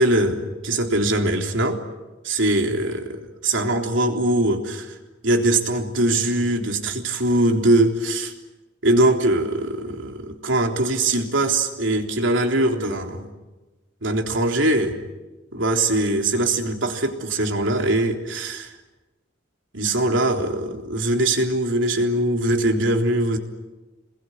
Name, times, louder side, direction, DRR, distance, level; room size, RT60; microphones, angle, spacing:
voice 1, 0.0-1.8 2.2-4.9 5.2-8.3 8.8-13.3 14.0-15.0 15.5-18.7 19.7-23.4, right 1 dB, 70° right, 2 dB, 3.7 m, -21 dB
27.5 x 21.5 x 9.8 m, 1.1 s
head